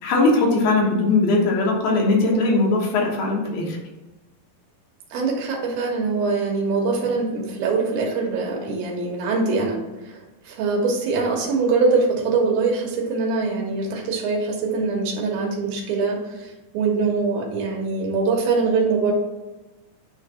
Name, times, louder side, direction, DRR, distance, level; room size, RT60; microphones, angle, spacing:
voice 1, 0.0-3.8, left 3 dB, 75° left, -2 dB, 3.2 m, -20 dB
voice 2, 5.1-19.1, right 4 dB, 75° right, 0 dB, 2.9 m, -23 dB
9.6 x 3.2 x 4.2 m, 1.1 s
omnidirectional pair, 4.4 m